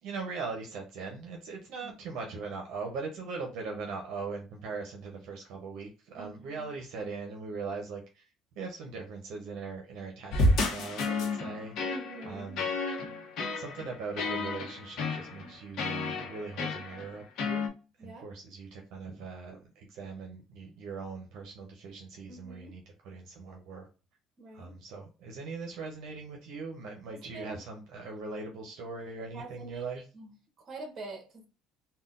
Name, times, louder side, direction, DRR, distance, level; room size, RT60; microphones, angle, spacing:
voice 1, 0.0-8.3 8.6-11.9 12.3-12.7 13.5-17.7 18.0-23.9 24.5-30.0, right 4 dB, 70° right, 0.7 m, -40 dB
voice 2, 6.2-6.6 11.9-12.6 18.0-18.3 22.3-22.8 24.4-24.8 27.1-27.6 29.3-29.8 30.1-30.3 30.6-31.5, right 2 dB, 40° right, 1.2 m, -45 dB
sound 1, 10.3-17.7, left 2 dB, 65° left, 0.8 m, -31 dB
3.6 x 2.2 x 2.5 m
cardioid pair, 120°, 0 cm